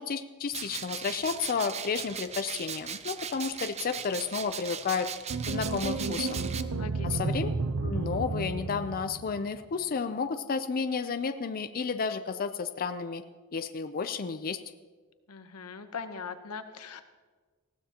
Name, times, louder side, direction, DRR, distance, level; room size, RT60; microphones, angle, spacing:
voice 1, 0.0-5.1 5.5-6.4 7.0-7.5 7.8-13.2 13.5-14.6, left 5 dB, 40° left, 9 dB, 0.5 m, -32 dB
sound 1, 0.5-6.6, right 7 dB, 30° right, 0.6 m, -38 dB
sound 2, 5.3-9.6, right 3 dB, 85° right, 0.7 m, -32 dB
voice 2, 6.8-7.3 15.3-17.0, left 5 dB, 85° left, 9 dB, 1.0 m, -41 dB
19.5 x 15.5 x 2.9 m, 1.4 s
head